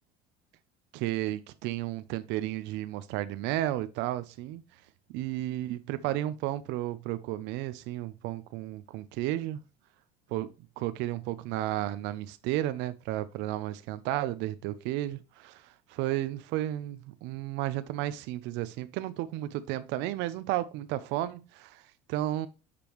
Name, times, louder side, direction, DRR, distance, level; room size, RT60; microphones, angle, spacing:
voice 1, 0.9-4.6 5.1-9.6 10.3-10.5 10.8-21.8 22.1-22.5, right 14 dB, 65° right, 0.5 m, -33 dB
6.7 x 5.2 x 3.0 m
cardioid pair, 140°, 19 cm